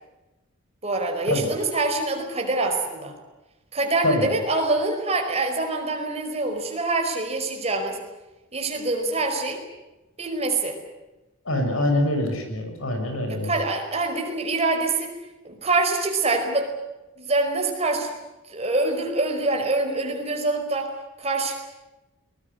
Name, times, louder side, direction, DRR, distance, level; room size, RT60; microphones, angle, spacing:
voice 1, 0.8-3.1 3.7-8.0 8.5-9.6 10.2-10.8 13.3-15.2 15.4-16.7 17.2-18.2 18.5-20.9 21.2-21.6, right 2 dB, 30° right, 3 dB, 4.9 m, -25 dB
voice 2, 11.4-13.5, left 1 dB, 75° left, 5 dB, 6.8 m, -24 dB
22.0 x 21.0 x 9.7 m, 1.0 s
head